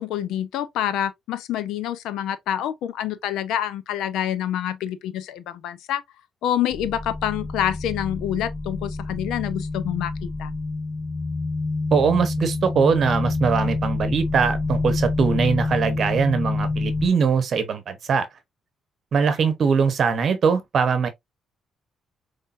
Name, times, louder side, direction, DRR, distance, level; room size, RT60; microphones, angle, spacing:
voice 1, 0.0-6.0 6.4-10.5, left 11 dB, 90° left, 0.7 m, -27 dB
sound 1, 6.7-17.1, left 3 dB, 25° left, 0.5 m, -27 dB
voice 2, 11.9-18.3 19.1-21.1, right 6 dB, 55° right, 0.9 m, -21 dB
5.6 x 3.3 x 2.6 m
cardioid pair, 90°, 0 cm